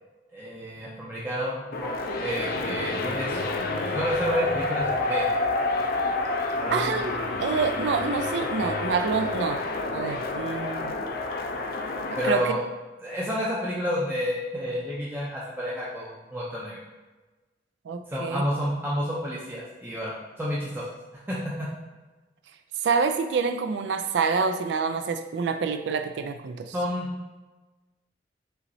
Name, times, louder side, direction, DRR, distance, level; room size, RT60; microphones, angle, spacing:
voice 1, 0.3-1.9 2.2-5.4 6.5-7.3 12.2-12.6 13.0-16.8 18.1-20.9 21.3-21.7 26.7-27.1, equal, 10° right, -6 dB, 0.5 m, -30 dB
sound 1, 1.7-12.3, left 2 dB, 55° left, 0.4 m, -29 dB
voice 2, 6.7-7.1 7.4-9.6 9.9-10.9 12.1-12.6 17.9-18.4 22.8-26.7, right 5 dB, 75° right, 7 dB, 0.3 m, -27 dB
5.4 x 3.0 x 2.7 m, 1.2 s
head